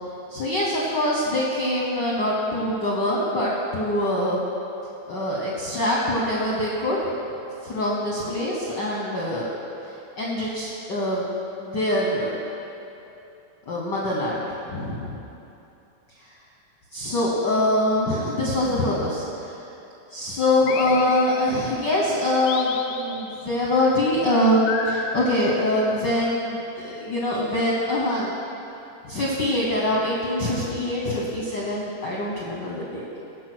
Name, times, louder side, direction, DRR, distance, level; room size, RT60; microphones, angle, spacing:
voice 1, 0.3-4.4 5.1-7.0 7.6-9.5 10.2-11.2 11.6-12.4 13.7-15.2 16.9-19.2 20.1-28.3 29.1-33.0, left 1 dB, 60° left, -4 dB, 1.1 m, -24 dB
sound 1, 20.7-21.8 22.5-23.6 24.7-26.1, left 5 dB, 80° left, 1.7 m, -33 dB
15.5 x 5.3 x 6.1 m, 2.9 s
omnidirectional pair, 3.3 m